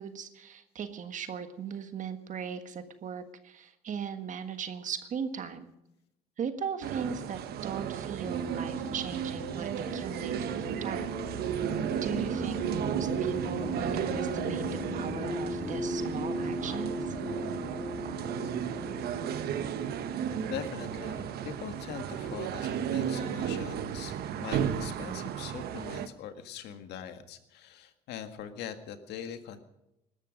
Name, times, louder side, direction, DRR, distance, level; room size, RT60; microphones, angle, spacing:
voice 1, 0.0-5.7 6.4-11.1 12.0-14.6 14.9-17.1, right 7 dB, 50° right, 9 dB, 1.5 m, -38 dB
sound 1, 6.8-26.1, right 9 dB, 70° right, 1.2 m, -34 dB
sound 2, 8.2-22.8, equal, 40° left, 6.8 m, -38 dB
voice 2, 20.5-29.6, left 8 dB, 80° left, 8 dB, 1.8 m, -42 dB
20.0 x 12.5 x 5.2 m, 0.85 s
cardioid pair, 110°, 17 cm